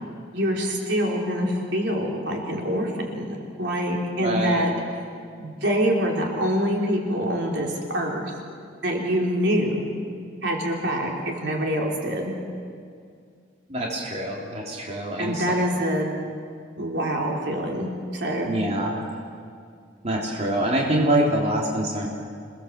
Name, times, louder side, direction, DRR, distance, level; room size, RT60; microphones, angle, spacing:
voice 1, 0.3-4.7 5.4-8.3 8.8-9.9 10.4-12.3 15.2-16.2 16.8-18.5, equal, 60° right, -1 dB, 3.8 m, -25 dB
voice 2, 4.2-4.7 13.7-15.7 18.4-19.1 20.0-22.1, right 1 dB, 35° right, -3 dB, 3.4 m, -25 dB
28.0 x 19.0 x 7.5 m, 2.3 s
head